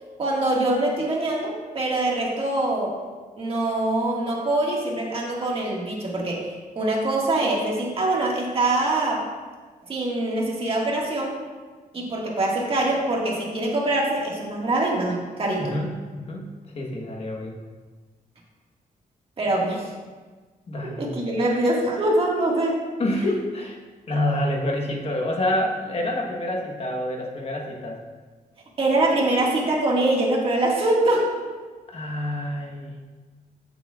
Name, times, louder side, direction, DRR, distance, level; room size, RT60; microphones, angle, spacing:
voice 1, 0.2-3.0 3.4-6.5 6.8-9.3 9.9-11.4 11.9-15.8 19.4-19.9 21.0-22.9 28.8-31.3, right 2 dB, 40° right, -3 dB, 1.8 m, -24 dB
voice 2, 15.6-16.5 16.7-17.6 20.7-21.1 23.0-23.8 24.1-28.0 31.9-33.0, left 1 dB, 40° left, 0 dB, 1.2 m, -27 dB
14.0 x 7.1 x 2.4 m, 1.4 s
wide cardioid pair, 165°, 15 cm